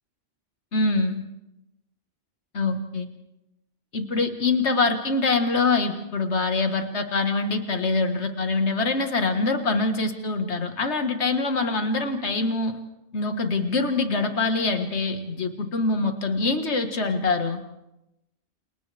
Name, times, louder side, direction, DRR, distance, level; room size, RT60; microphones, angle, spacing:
voice 1, 0.7-1.2 2.5-3.1 3.9-12.8 13.1-17.6, left 3 dB, 80° left, 6 dB, 1.9 m, -24 dB
29.5 x 28.5 x 3.4 m, 0.91 s
omnidirectional pair, 1.1 m